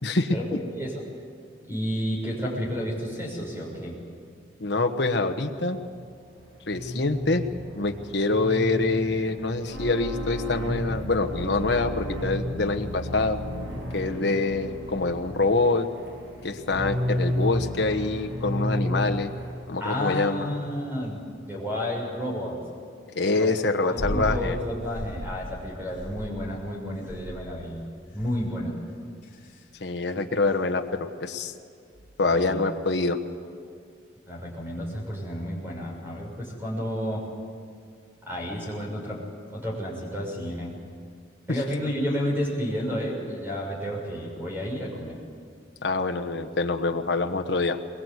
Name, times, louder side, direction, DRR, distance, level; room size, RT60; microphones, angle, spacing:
voice 1, 0.0-0.6 4.6-5.8 6.7-7.4 7.8-13.4 13.9-15.9 16.4-19.3 19.7-20.5 23.1-24.6 29.8-31.5 32.2-33.2 41.5-41.6 45.8-47.8, left 3 dB, 65° left, 5 dB, 1.2 m, -25 dB
voice 2, 1.7-4.0 19.8-22.6 23.3-23.5 23.8-27.8 28.1-28.7 32.2-32.6 34.3-37.2 38.2-39.2 39.5-40.8 41.5-45.2, equal, 10° right, -2 dB, 6.2 m, -31 dB
sound 1, 5.7-19.5, left 1 dB, 75° right, 7.0 m, -32 dB
sound 2, 23.9-24.4 24.8-25.4 26.0-26.6 27.1-27.5 28.2-28.5 29.2-29.6 30.5-30.6, equal, 45° left, 3.4 m, -34 dB
22.0 x 22.0 x 8.2 m, 2.2 s
head